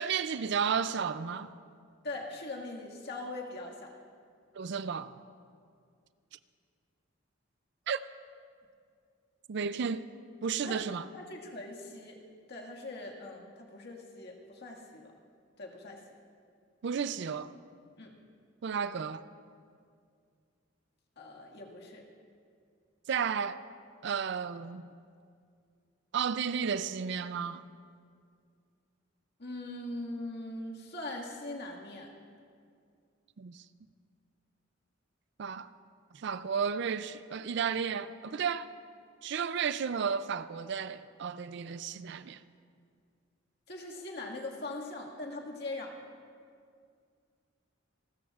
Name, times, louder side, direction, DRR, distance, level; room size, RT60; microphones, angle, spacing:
voice 1, 0.0-1.5 4.5-5.1 7.9-8.0 9.5-10.1 10.4-11.0 16.8-17.5 18.6-19.2 23.1-23.6 24.0-24.9 26.1-27.6 33.4-33.6 35.4-35.7 36.1-38.7 39.2-42.4, right 6 dB, 60° right, 0.4 m, -33 dB
voice 2, 2.0-3.9 10.6-10.8 11.1-12.2 12.5-15.1 15.6-16.0 18.0-18.2 21.2-22.0 29.4-32.1 43.7-46.0, left 2 dB, 60° left, 1.9 m, -41 dB
28.5 x 13.5 x 2.4 m
head